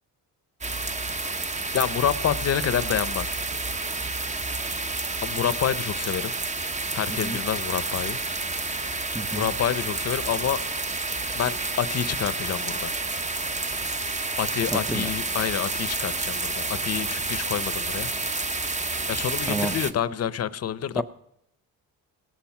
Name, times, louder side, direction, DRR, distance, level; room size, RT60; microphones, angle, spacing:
sound 1, 0.6-19.9, right 3 dB, 20° right, 1.0 m, -29 dB
voice 1, 1.7-3.4 5.2-6.3 6.9-8.2 9.3-10.6 11.3-12.9 14.4-18.1 19.1-21.0, left 9 dB, 45° left, 16 dB, 0.8 m, -28 dB
voice 2, 7.1-7.4 9.1-9.5 14.7-15.1 19.5-19.7 21.0-21.1, right 1 dB, ahead, 11 dB, 0.6 m, -30 dB
sound 2, 9.1-14.4, right 2 dB, 50° right, 5.3 m, -52 dB
17.5 x 11.5 x 5.9 m, 0.76 s
cardioid pair, 110°, 35 cm